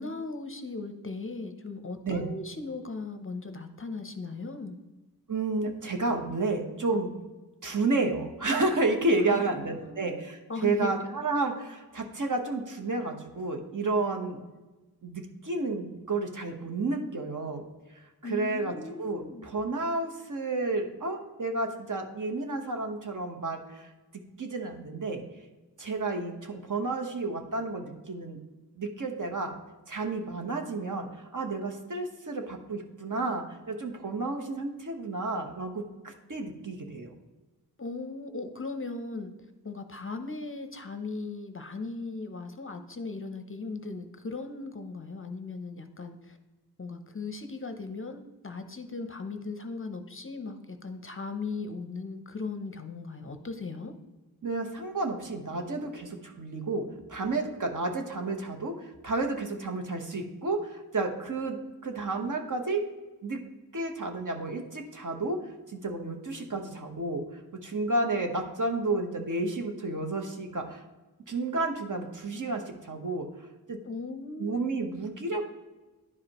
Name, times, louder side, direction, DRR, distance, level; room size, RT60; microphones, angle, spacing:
voice 1, 0.0-4.8 9.2-10.2 10.5-11.2 18.2-19.5 37.8-39.3 39.6-46.4 46.8-53.9 73.8-74.5, left 3 dB, 35° left, 8 dB, 0.6 m, -38 dB
voice 2, 5.3-7.1 7.6-14.4 15.0-17.6 18.2-23.9 24.4-25.2 25.8-28.4 28.8-29.5 29.9-37.1 54.4-62.8 63.2-63.4 63.7-65.4 65.7-67.2 67.6-70.8 71.3-73.3 73.7-73.8 74.4-75.5, right 2 dB, 50° right, 4 dB, 1.0 m, -31 dB
10.5 x 4.9 x 2.9 m, 1.2 s
wide cardioid pair, 85°, 39 cm